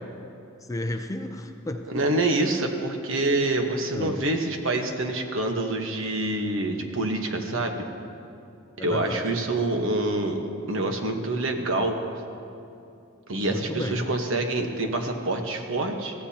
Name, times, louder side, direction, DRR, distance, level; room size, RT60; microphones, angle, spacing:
voice 1, 0.7-1.9 3.9-4.2 8.8-9.3 13.5-14.1, left 1 dB, 15° left, 5 dB, 0.6 m, -32 dB
voice 2, 1.9-7.9 8.8-12.0 13.3-16.1, right 2 dB, 65° right, 4 dB, 1.3 m, -26 dB
23.0 x 15.0 x 2.9 m, 2.6 s
head